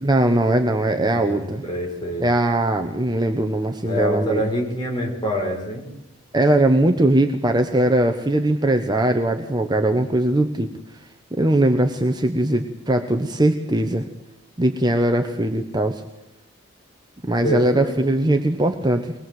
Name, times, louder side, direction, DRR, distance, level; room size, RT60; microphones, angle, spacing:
voice 1, 0.0-1.6 2.2-4.4 6.3-10.7 11.3-14.0 14.6-16.0 17.3-19.1, right 1 dB, 20° right, 5 dB, 1.1 m, -20 dB
voice 2, 0.8-2.3 3.8-5.8 17.4-18.0, equal, 20° left, -1 dB, 5.5 m, -26 dB
23.0 x 20.5 x 7.8 m, 0.82 s
head